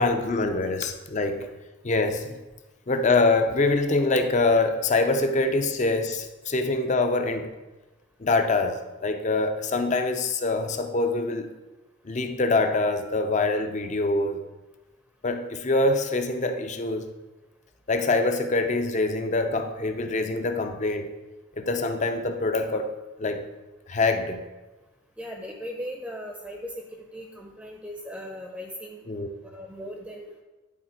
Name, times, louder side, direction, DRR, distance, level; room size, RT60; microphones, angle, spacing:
voice 1, 0.0-1.5 1.8-2.4 2.9-7.5 8.2-11.5 12.0-14.4 15.2-17.1 17.9-21.1 21.6-22.9 23.2-23.5 23.9-24.4 29.1-29.3, left 3 dB, 35° left, 7 dB, 0.5 m, -24 dB
voice 2, 25.2-26.8 27.1-29.0 29.4-30.4, equal, 5° right, 1 dB, 0.6 m, -38 dB
10.5 x 4.1 x 4.4 m, 1.1 s
head